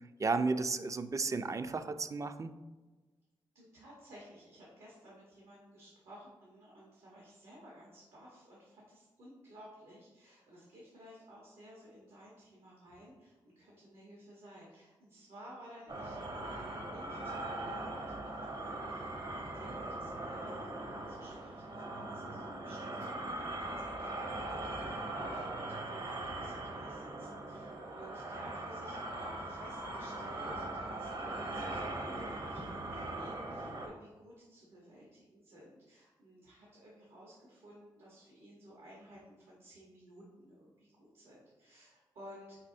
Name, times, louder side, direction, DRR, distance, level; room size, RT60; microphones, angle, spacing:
voice 1, 0.2-2.5, right 3 dB, 35° right, 10 dB, 0.3 m, -33 dB
voice 2, 3.5-42.6, equal, 80° right, -4 dB, 1.0 m, -55 dB
sound 1, 15.9-33.9, right 2 dB, 50° right, 0.8 m, -40 dB
4.2 x 4.2 x 2.6 m, 1.2 s
cardioid pair, 60°, 10 cm